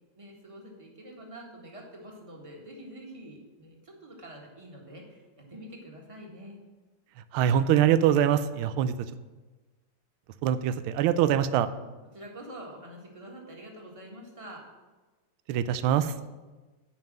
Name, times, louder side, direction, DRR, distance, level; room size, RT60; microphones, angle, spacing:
voice 1, 0.1-6.6 12.1-14.6, right 1 dB, 15° right, -1 dB, 1.5 m, -46 dB
voice 2, 7.3-9.1 10.4-11.7 15.5-16.1, right 10 dB, 85° right, 13 dB, 1.4 m, -23 dB
9.2 x 5.4 x 7.5 m, 1.2 s
omnidirectional pair, 2.3 m